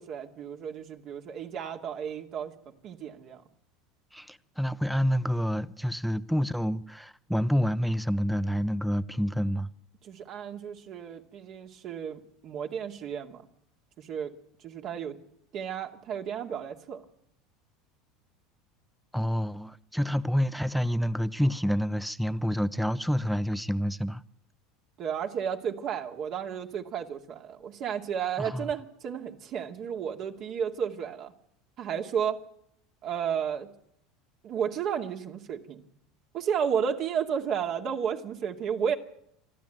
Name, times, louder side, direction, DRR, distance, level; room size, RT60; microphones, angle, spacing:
voice 1, 0.0-2.5 2.8-3.4 10.0-13.4 14.0-14.3 14.6-15.2 15.5-17.0 25.0-31.3 31.8-32.4 33.0-33.7 34.4-35.8 36.3-39.0, right 8 dB, 50° right, 2.4 m, -32 dB
voice 2, 4.1-9.7 19.1-24.2 28.4-28.7, equal, ahead, 0.9 m, -28 dB
27.5 x 12.5 x 9.3 m
hypercardioid pair, 95°, 0 cm